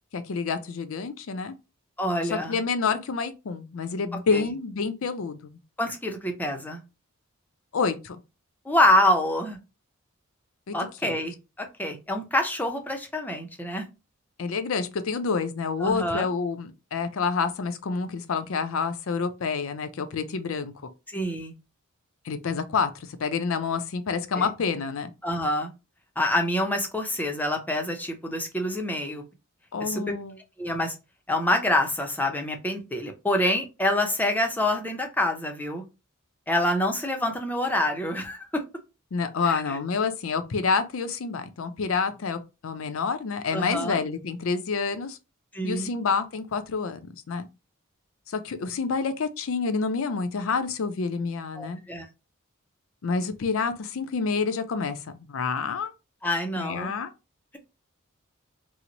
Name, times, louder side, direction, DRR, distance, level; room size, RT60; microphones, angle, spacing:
voice 1, 0.1-1.6 2.3-5.6 7.7-8.2 10.7-10.8 11.0-11.1 14.4-20.7 22.3-25.1 29.7-30.4 39.1-45.2 45.6-47.0 47.3-47.5 48.3-51.8 53.0-55.9 56.6-57.1, left 5 dB, 70° left, 0.5 m, -28 dB
voice 2, 2.0-2.6 4.3-4.5 5.8-6.8 8.7-9.6 10.7-13.9 15.8-16.3 21.1-21.5 24.4-24.5 25.2-25.7 26.2-29.2 29.8-30.1 30.6-31.0 31.3-35.8 36.5-38.6 39.4-39.8 43.5-44.0 45.5-45.9 51.6-52.1 56.2-56.9, left 1 dB, 10° left, 0.6 m, -26 dB
3.0 x 2.0 x 3.8 m
head